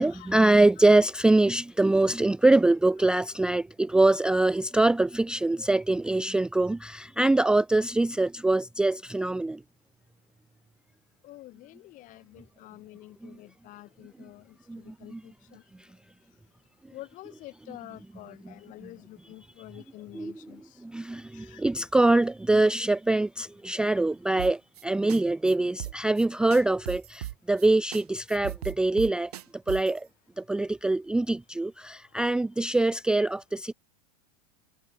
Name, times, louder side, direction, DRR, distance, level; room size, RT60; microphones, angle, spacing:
voice 1, 0.0-9.6 13.2-13.4 14.7-15.2 15.8-15.9 18.4-18.5 18.8-18.9 20.1-20.5 20.8-29.3 29.7-30.1 30.4-33.7, right 2 dB, 5° right, 0.5 m, -24 dB
voice 2, 11.2-15.6 16.9-20.6 21.3-21.6, left 17 dB, 40° left, 4.9 m, -48 dB
sound 1, 24.4-24.8 25.1-25.2 25.5-25.6 25.8-26.2 26.5-27.7 27.9-28.0 28.3-30.0, right 13 dB, 85° right, 2.0 m, -37 dB
supercardioid pair, 130°, 19 cm